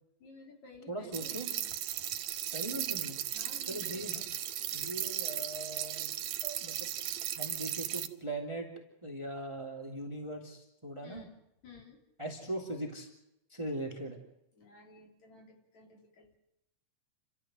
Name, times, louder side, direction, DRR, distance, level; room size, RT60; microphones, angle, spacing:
voice 1, 0.2-1.7 3.3-4.1 11.0-11.4 11.6-12.0 14.6-16.4, left 3 dB, 60° left, 2 dB, 4.7 m, -54 dB
voice 2, 0.9-1.5 2.5-3.2 3.6-4.2 4.7-6.1 6.4-6.9 7.3-8.7 9.0-11.3 12.2-13.1 13.5-14.2, right 1 dB, 10° right, 2 dB, 2.7 m, -40 dB
sound 1, 1.1-8.1, right 11 dB, 70° right, 2.2 m, -36 dB
30.0 x 14.0 x 7.9 m, 0.86 s
omnidirectional pair, 3.8 m